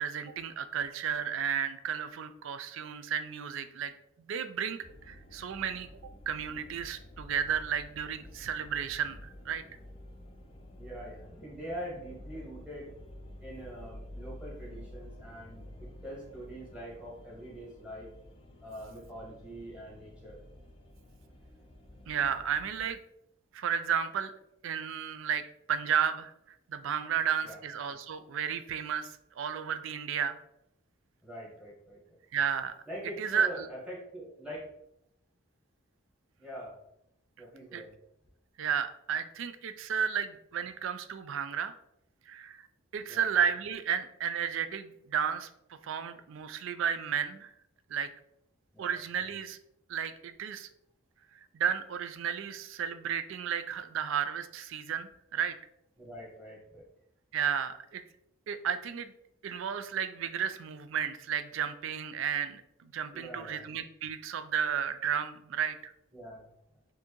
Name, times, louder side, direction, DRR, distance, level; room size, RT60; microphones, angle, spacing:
voice 1, 0.0-3.9 4.3-4.8 5.1-5.9 6.3-9.6 22.1-23.0 23.5-24.3 24.6-26.3 26.7-29.1 29.4-30.4 32.3-32.7 33.2-33.7 37.7-37.8 38.6-41.8 42.3-42.7 42.9-47.5 47.9-48.1 48.8-49.6 49.9-50.7 51.5-55.6 57.3-58.0 58.5-59.1 59.4-65.9, right 8 dB, 60° right, 11 dB, 0.3 m, -33 dB
sound 1, 4.8-22.9, left 1 dB, 25° left, 0.4 m, -50 dB
voice 2, 10.8-12.9 13.4-18.1 18.6-20.4 27.4-27.6 31.2-32.2 32.9-34.7 36.4-36.8 37.4-37.9 43.1-43.2 48.7-48.9 56.0-56.9 63.1-63.6 66.1-66.5, equal, 5° right, -6 dB, 1.3 m, -44 dB
4.4 x 2.7 x 3.0 m, 0.78 s
head